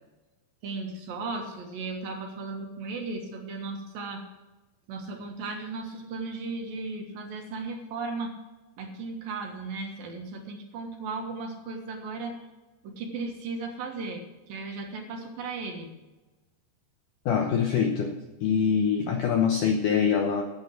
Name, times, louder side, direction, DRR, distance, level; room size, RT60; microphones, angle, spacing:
voice 1, 0.6-4.2 4.9-8.4 8.8-12.4 12.8-15.9, right 3 dB, 65° right, 2 dB, 2.9 m, -36 dB
voice 2, 17.3-20.4, left 7 dB, 75° left, 3 dB, 1.9 m, -24 dB
11.5 x 8.3 x 6.4 m, 1.1 s
omnidirectional pair, 4.9 m